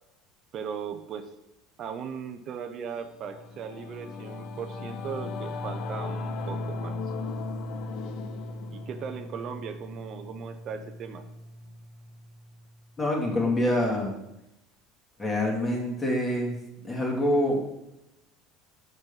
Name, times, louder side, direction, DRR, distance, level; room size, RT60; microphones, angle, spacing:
voice 1, 0.5-1.3 1.8-7.0 8.7-11.2, right 7 dB, 50° right, 7 dB, 0.7 m, -38 dB
Singing / Musical instrument, 3.0-12.7, left 3 dB, 65° left, 0.7 m, -37 dB
voice 2, 13.0-14.1 15.2-16.6 16.9-17.6, left 1 dB, 20° left, -1 dB, 2.3 m, -26 dB
5.4 x 5.2 x 5.6 m, 0.88 s
supercardioid pair, 100°, 0 cm